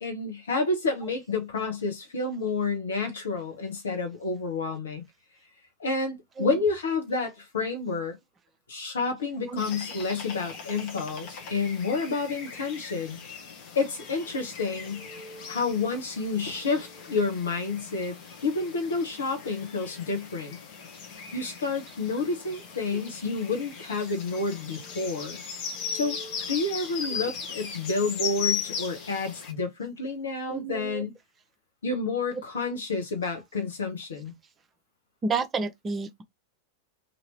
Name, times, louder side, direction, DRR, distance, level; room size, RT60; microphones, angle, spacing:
voice 1, 0.0-5.0 5.8-8.2 8.7-13.2 13.7-15.0 15.5-18.1 18.4-20.6 21.3-25.4 25.9-26.2 26.5-31.1 31.8-34.3, left 3 dB, 65° left, 1.2 m, -29 dB
sound 1, 9.6-29.5, left 6 dB, 45° left, 1.0 m, -38 dB
voice 2, 30.5-31.0 35.2-36.2, right 4 dB, 20° right, 0.7 m, -30 dB
2.9 x 2.8 x 2.9 m
figure-of-eight pair, 90°, 0 cm